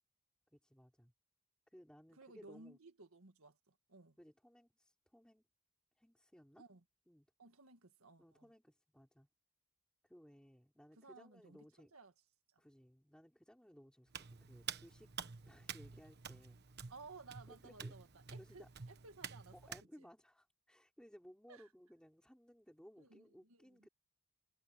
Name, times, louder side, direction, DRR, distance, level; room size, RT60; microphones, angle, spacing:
voice 1, 0.5-1.1 1.7-2.8 4.2-5.4 6.0-6.6 7.1-7.3 8.2-9.3 10.0-11.9 12.6-15.2 15.5-16.6 17.5-17.9 18.3-18.7 19.5-23.9, equal, 5° left, 4.2 m, -61 dB
voice 2, 2.2-4.2 6.6-6.8 7.4-8.5 11.0-12.1 12.5-12.6 16.9-19.5 20.0-20.1 21.5-21.6 23.0-23.7, right 3 dB, 75° right, 1.9 m, -58 dB
Hands, 14.1-19.8, right 7 dB, 50° right, 1.2 m, -49 dB
head